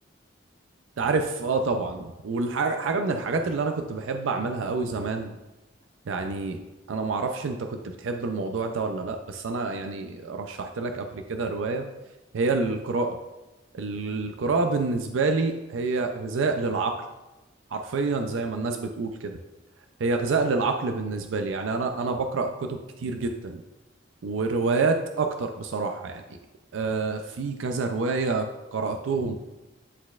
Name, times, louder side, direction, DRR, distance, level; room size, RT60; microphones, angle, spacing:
voice 1, 1.0-5.4 6.1-6.6 6.9-11.9 12.3-13.2 13.7-17.0 17.7-19.4 20.0-23.6 24.2-26.2 26.7-29.3, right 3 dB, 80° right, 5 dB, 0.4 m, -27 dB
9.9 x 4.0 x 2.3 m, 1.1 s
head